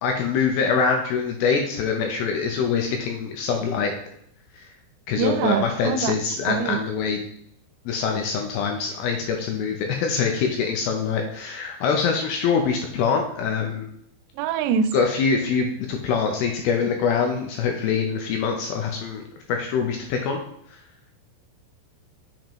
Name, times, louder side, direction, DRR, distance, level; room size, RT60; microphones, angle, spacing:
voice 1, 0.0-4.0 4.6-4.7 5.1-7.2 7.9-13.9 14.9-19.2 19.5-20.4, left 5 dB, 80° left, 3 dB, 2.2 m, -24 dB
voice 2, 5.2-6.1 6.5-6.8 14.4-14.9, right 7 dB, 90° right, 10 dB, 2.7 m, -24 dB
7.0 x 5.2 x 3.0 m, 0.70 s
omnidirectional pair, 4.9 m